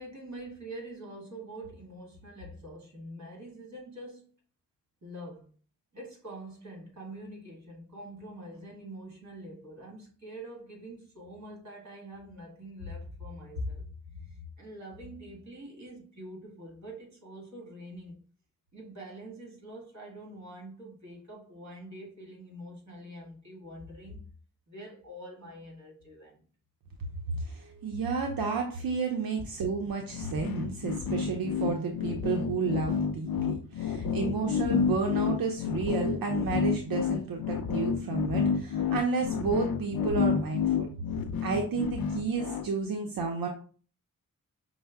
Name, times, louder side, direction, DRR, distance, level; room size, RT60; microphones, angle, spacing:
voice 1, 0.0-4.3 5.0-5.5 5.9-18.2 18.7-24.3 24.7-26.4, equal, 55° right, 1.7 m, -44 dB
voice 2, 27.3-40.9 41.4-43.5, right 4 dB, 85° right, 0.6 m, -31 dB
sound 1, 30.1-42.7, left 6 dB, 85° left, 0.5 m, -30 dB
5.3 x 2.0 x 3.5 m
wide cardioid pair, 75°, 34 cm